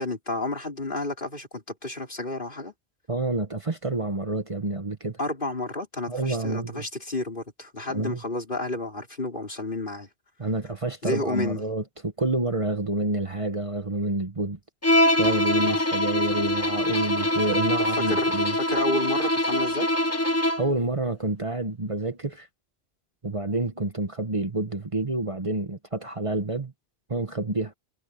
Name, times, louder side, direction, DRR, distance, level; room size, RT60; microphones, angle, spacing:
voice 1, 0.0-2.7 5.2-10.1 11.0-11.6 15.7-15.8 17.9-19.9, left 2 dB, 55° left, 5.0 m, -31 dB
voice 2, 3.1-5.2 6.1-6.8 7.9-8.2 10.4-14.6 15.2-18.6 20.6-22.5 23.2-26.7 27.1-27.7, right 2 dB, 30° right, 1.2 m, -28 dB
Bowed string instrument, 14.8-20.8, left 1 dB, 15° left, 1.1 m, -23 dB
omnidirectional pair, 1.1 m